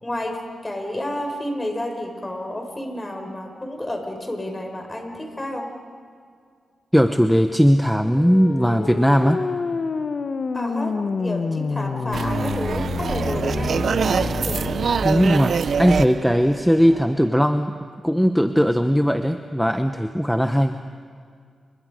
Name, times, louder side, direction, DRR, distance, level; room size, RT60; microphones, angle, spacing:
voice 1, 0.0-0.4 0.6-5.7 10.5-14.7, left 1 dB, 25° left, 4 dB, 5.1 m, -30 dB
voice 2, 6.9-9.4 15.0-20.8, equal, ahead, 8 dB, 0.9 m, -19 dB
sound 1, 8.0-15.1, left 4 dB, 60° left, 1.1 m, -28 dB
sound 2, 12.1-17.3, right 6 dB, 70° right, 0.5 m, -25 dB
29.0 x 24.5 x 5.1 m, 2.1 s
cardioid pair, 55°, 0 cm